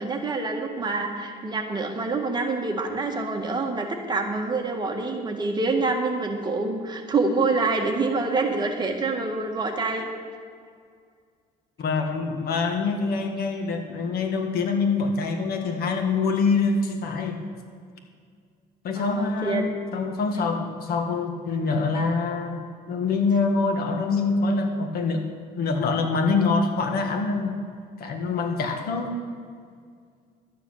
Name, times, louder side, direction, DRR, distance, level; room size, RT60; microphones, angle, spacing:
voice 1, 0.0-10.1 18.9-19.6, right 3 dB, 25° right, 2 dB, 1.7 m, -26 dB
voice 2, 11.8-17.4 18.8-19.7 19.9-22.6 22.9-25.2 25.6-27.6 28.0-29.2, left 4 dB, 65° left, 4 dB, 1.7 m, -25 dB
12.0 x 9.6 x 6.4 m, 2.1 s
cardioid pair, 110°, 17 cm